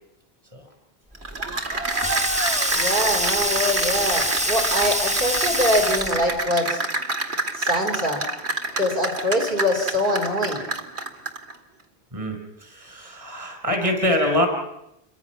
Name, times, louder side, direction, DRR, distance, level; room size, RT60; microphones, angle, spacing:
Cheering / Applause, 1.1-11.5, right 2 dB, 85° right, 2.3 m, -28 dB
Sink (filling or washing), 1.2-6.4, equal, 5° right, 1.1 m, -25 dB
voice 1, 2.7-6.8 7.5-8.2 8.8-10.7, left 1 dB, 55° right, 2 dB, 4.2 m, -24 dB
voice 2, 12.1-14.5, left 1 dB, 30° right, 3 dB, 5.0 m, -24 dB
28.5 x 23.0 x 6.0 m, 0.84 s
omnidirectional pair, 1.1 m